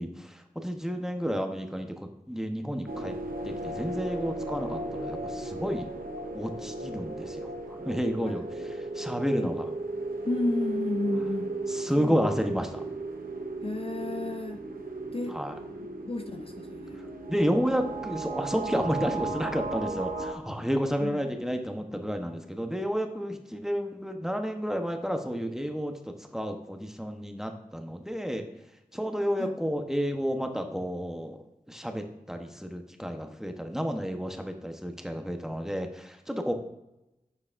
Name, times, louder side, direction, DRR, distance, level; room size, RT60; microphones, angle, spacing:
voice 1, 0.0-3.1 3.4-5.9 6.3-9.7 11.7-12.8 15.3-15.6 16.9-28.5 28.9-31.4 31.7-36.5, equal, 5° right, 4 dB, 1.0 m, -31 dB
sound 1, 2.9-20.3, right 2 dB, 90° right, 0.8 m, -35 dB
voice 2, 10.2-11.5 12.0-12.2 13.6-14.6 15.1-15.4 15.8-17.0 21.0-21.2 29.4-29.5, left 2 dB, 40° left, 6 dB, 0.5 m, -32 dB
9.8 x 6.7 x 2.6 m, 0.91 s
wide cardioid pair, 45°, 15 cm